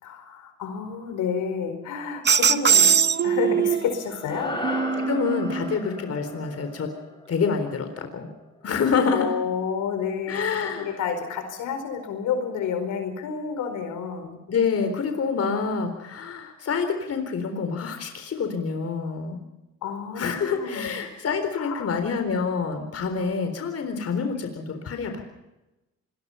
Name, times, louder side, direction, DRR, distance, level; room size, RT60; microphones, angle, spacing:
voice 1, 0.0-2.9 3.2-4.5 9.1-10.4 10.8-14.4 19.8-20.9 21.6-21.9, left 6 dB, 85° left, 7 dB, 4.7 m, -30 dB
sound 1, 2.2-4.0 4.6-5.7, right 7 dB, 35° right, 1.0 m, -21 dB
sound 2, 4.3-8.7, left 1 dB, 15° left, 7.1 m, -36 dB
voice 2, 5.0-6.9 7.3-8.3 8.6-9.3 10.3-10.9 14.5-19.4 20.2-25.2, left 5 dB, 55° left, 7 dB, 4.0 m, -27 dB
26.5 x 20.5 x 5.7 m, 1.0 s
cardioid pair, 90°, 30 cm